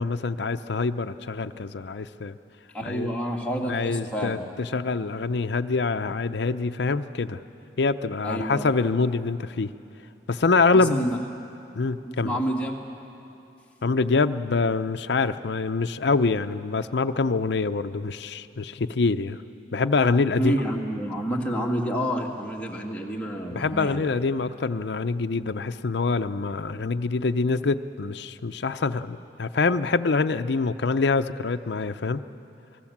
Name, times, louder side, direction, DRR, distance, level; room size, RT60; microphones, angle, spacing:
voice 1, 0.0-2.4 2.8-3.1 3.7-7.4 7.8-9.7 10.3-11.1 11.8-12.4 13.8-19.4 19.7-20.6 23.5-32.2, left 4 dB, 70° left, 9 dB, 0.6 m, -25 dB
voice 2, 2.7-4.4 8.2-8.7 10.7-11.2 12.1-12.9 20.4-24.0, equal, 10° left, -2 dB, 2.3 m, -29 dB
27.5 x 20.0 x 7.3 m, 2.8 s
head